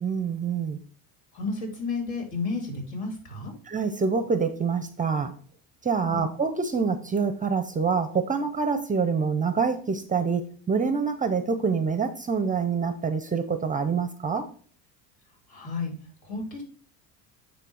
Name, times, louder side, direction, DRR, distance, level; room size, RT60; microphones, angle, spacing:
voice 1, 0.0-0.8 3.7-5.3 5.8-14.5, right 5 dB, 20° right, 10 dB, 0.7 m, -26 dB
voice 2, 1.3-3.5 6.0-6.3 15.5-15.9 16.2-16.6, left 3 dB, 65° left, 1 dB, 3.6 m, -32 dB
9.3 x 3.3 x 4.8 m, 0.43 s
supercardioid pair, 95°, 41 cm